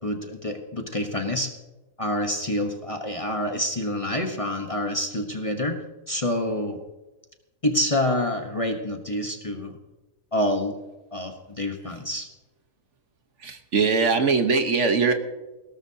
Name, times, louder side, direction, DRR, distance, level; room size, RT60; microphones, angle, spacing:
voice 1, 0.0-1.5 2.0-5.8 6.1-6.8 7.6-9.8 10.3-10.8 11.1-12.3, left 1 dB, 25° left, 4 dB, 1.1 m, -27 dB
voice 2, 13.4-15.1, right 4 dB, 60° right, 7 dB, 1.4 m, -21 dB
20.0 x 17.0 x 2.8 m, 1.1 s
omnidirectional pair, 1.5 m